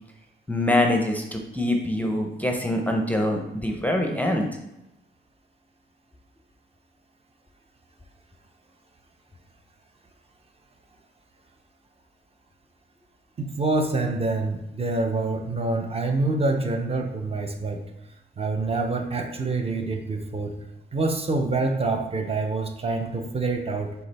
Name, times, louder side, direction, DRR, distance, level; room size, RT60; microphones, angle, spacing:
voice 1, 0.5-4.5, left 1 dB, 10° left, 2 dB, 0.6 m, -24 dB
voice 2, 13.4-17.8 18.4-20.5 20.9-23.9, right 3 dB, 30° right, 4 dB, 0.6 m, -26 dB
6.8 x 4.7 x 3.3 m, 0.90 s
wide cardioid pair, 165°, 21 cm